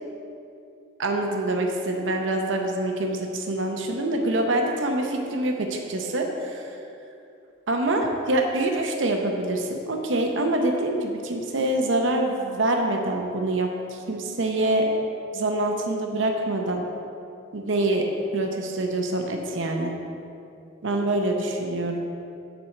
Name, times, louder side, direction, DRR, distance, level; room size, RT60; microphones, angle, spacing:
voice 1, 1.0-6.7 7.7-14.9 15.3-16.8 17.5-19.9 20.8-22.0, right 1 dB, 75° right, 2 dB, 0.7 m, -25 dB
6.8 x 4.5 x 6.7 m, 2.7 s
head